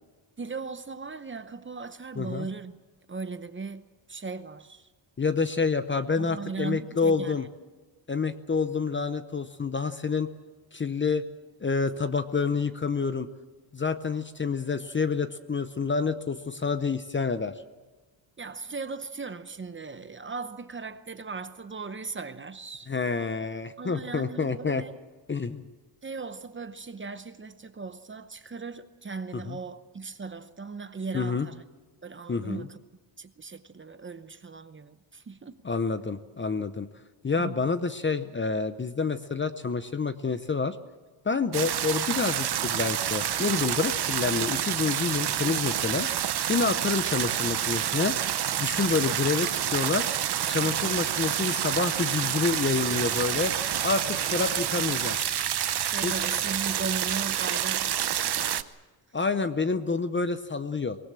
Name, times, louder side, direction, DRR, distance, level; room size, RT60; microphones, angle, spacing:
voice 1, 0.4-2.7 3.1-4.9 6.2-7.5 18.4-22.9 23.8-24.9 26.0-31.6 32.0-32.8 33.2-35.6 37.4-37.7 55.8-58.6, right 4 dB, 25° right, 0.8 m, -38 dB
voice 2, 2.2-2.5 5.2-7.4 8.1-10.3 10.7-11.2 11.6-13.3 13.7-17.5 22.9-24.8 25.3-25.6 29.5-29.6 31.1-31.5 32.3-32.7 35.6-36.9 37.2-40.8 41.2-46.1 46.5-48.1 48.6-50.1 50.5-53.5 53.8-55.2 56.0-56.1 59.1-61.0, left 4 dB, 25° left, 0.7 m, -28 dB
sound 1, 41.5-58.6, right 10 dB, 55° right, 0.9 m, -28 dB
sound 2, 50.5-56.6, left 7 dB, 65° left, 1.9 m, -47 dB
23.5 x 19.0 x 7.6 m
wide cardioid pair, 170°, 49 cm